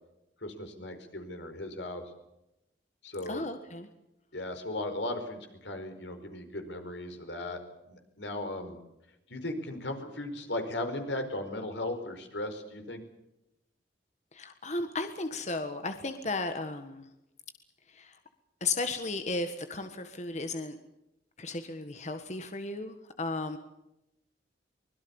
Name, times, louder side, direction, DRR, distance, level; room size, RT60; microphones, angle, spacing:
voice 1, 0.4-2.0 3.0-3.5 4.3-7.6 7.9-8.8 9.3-13.0, left 1 dB, 90° left, 6 dB, 4.7 m, -37 dB
voice 2, 3.3-3.9 14.3-17.0 17.9-18.1 18.6-20.8 21.4-23.6, left 3 dB, 40° left, 8 dB, 1.5 m, -34 dB
24.5 x 21.5 x 7.2 m, 0.90 s
head